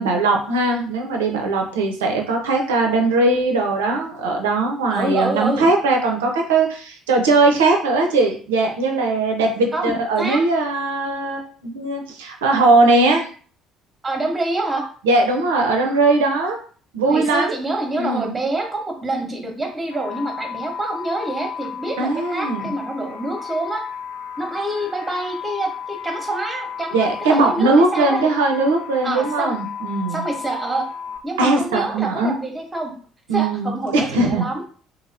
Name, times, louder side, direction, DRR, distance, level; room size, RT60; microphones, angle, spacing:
voice 1, 0.0-13.3 15.0-16.6 16.9-17.6 18.0-18.3 22.0-22.7 26.9-30.3 31.4-32.4 33.3-34.5, right 3 dB, 70° right, 2 dB, 0.5 m, -19 dB
voice 2, 4.9-5.6 9.7-10.4 14.0-14.8 17.1-23.8 24.4-28.3 29.0-29.5 30.1-30.9 31.2-32.9 33.3-34.6, right 2 dB, 20° right, 2 dB, 0.9 m, -26 dB
sound 1, 19.9-31.2, left 7 dB, 65° left, 0.6 m, -34 dB
2.8 x 2.7 x 2.6 m, 0.43 s
figure-of-eight pair, 50°, 0 cm